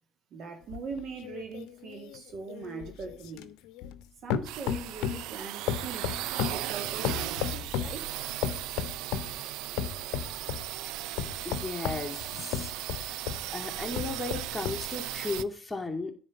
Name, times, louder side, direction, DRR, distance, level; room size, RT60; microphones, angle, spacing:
voice 1, 0.3-3.5 4.2-8.2, right 4 dB, 60° right, 2.4 m, -41 dB
sound 1, 0.7-4.0 4.3-5.3 5.7-8.0 8.4-9.4 9.8-10.7 11.2-13.5 13.9-14.9 15.4-15.5, left 10 dB, 75° left, 0.6 m, -34 dB
sound 2, 4.4-15.4, right 14 dB, 80° right, 0.4 m, -37 dB
voice 2, 11.4-13.2 13.5-16.1, left 3 dB, 10° left, 2.3 m, -35 dB
9.8 x 4.2 x 7.1 m
supercardioid pair, 70°, 0 cm